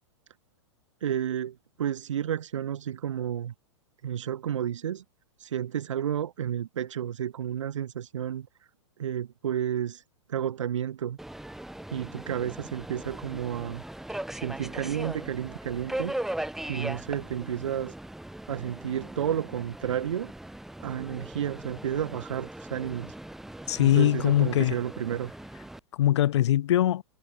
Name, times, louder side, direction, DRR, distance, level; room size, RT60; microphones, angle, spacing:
voice 1, 1.0-3.5 4.0-5.0 5.4-8.5 9.0-10.0 10.3-11.2 11.9-13.8 14.3-16.1 16.7-17.9 18.5-20.3 20.8-23.1 23.8-25.3, right 9 dB, 80° right, 0.4 m, -31 dB
Subway metro underground, 11.2-25.8, right 1 dB, ahead, 0.5 m, -39 dB
voice 2, 23.7-24.7 26.0-27.0, left 12 dB, 65° left, 1.3 m, -22 dB
hypercardioid pair, 110°, 15 cm